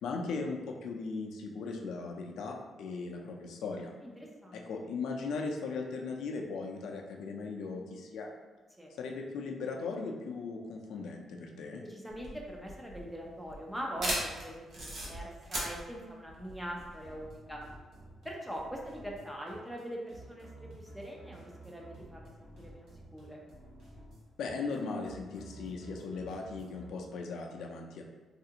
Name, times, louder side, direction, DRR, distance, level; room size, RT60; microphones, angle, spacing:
voice 1, 0.0-3.9 4.5-8.3 9.0-11.8 24.4-28.0, left 4 dB, 75° left, 1 dB, 0.4 m, -38 dB
voice 2, 4.0-4.6 8.8-8.9 11.8-17.6 18.2-23.4, equal, 5° right, -1 dB, 0.4 m, -42 dB
sound 1, 12.1-17.2, right 1 dB, 45° right, 0.7 m, -38 dB
sound 2, 17.0-26.9, right 1 dB, 70° right, 1.0 m, -52 dB
3.3 x 2.4 x 2.8 m, 1.3 s
cardioid pair, 175°, 0 cm